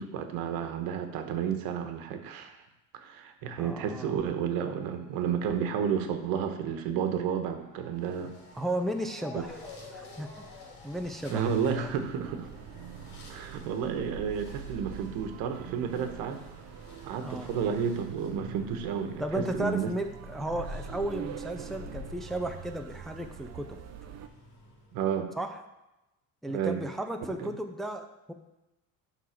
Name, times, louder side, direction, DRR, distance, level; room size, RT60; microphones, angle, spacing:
voice 1, 0.0-2.6 2.9-8.3 11.3-12.5 13.3-16.4 17.0-19.9 24.9-25.3 26.5-26.8 27.4-27.5, right 7 dB, 85° right, 6 dB, 1.2 m, -31 dB
Motor vehicle (road) / Siren, 3.6-16.6 16.9-18.1 18.7-18.8 19.1-19.2, left 2 dB, 30° left, 3.0 m, -53 dB
voice 2, 3.6-4.2 8.5-10.5 10.8-11.9 17.2-17.5 19.2-23.8 25.4-25.6 26.4-28.3, right 1 dB, ahead, 5 dB, 0.5 m, -35 dB
sound 1, 8.0-25.1, left 2 dB, 55° left, 2.4 m, -50 dB
sound 2, 11.3-24.3, right 10 dB, 50° right, 0.6 m, -44 dB
11.5 x 3.9 x 5.8 m, 0.97 s
cardioid pair, 145°, 34 cm